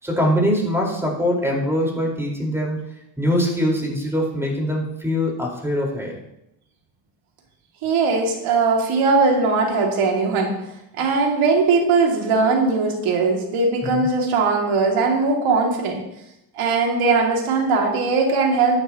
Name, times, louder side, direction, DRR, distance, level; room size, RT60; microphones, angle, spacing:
voice 1, 0.0-2.8 3.2-6.2 13.8-14.1, equal, 5° right, -2 dB, 4.6 m, -22 dB
voice 2, 7.8-10.5 11.0-16.0 16.6-18.8, right 4 dB, 85° right, 0 dB, 2.7 m, -19 dB
14.5 x 9.5 x 3.0 m, 0.84 s
cardioid pair, 75°, 48 cm